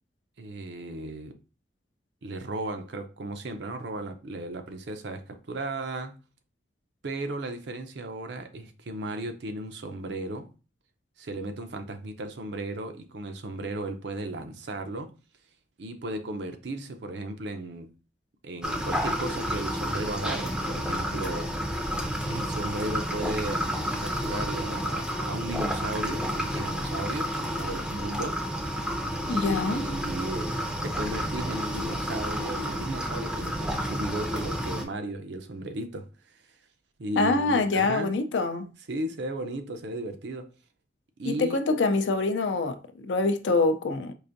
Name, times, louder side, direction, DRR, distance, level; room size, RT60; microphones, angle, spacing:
voice 1, 0.4-1.4 2.2-6.1 7.0-10.5 11.2-15.1 15.8-17.9 18.4-21.5 22.3-23.6 24.0-28.4 29.3-30.5 30.8-36.1 36.3-36.4 37.0-38.1 38.9-40.5 41.2-41.6, right 2 dB, 65° right, 0.5 m, -35 dB
sound 1, 18.6-34.8, equal, 5° right, 0.4 m, -30 dB
voice 2, 29.3-29.9 37.2-38.7 41.2-44.1, left 3 dB, 75° left, 0.4 m, -25 dB
4.7 x 2.5 x 2.5 m
head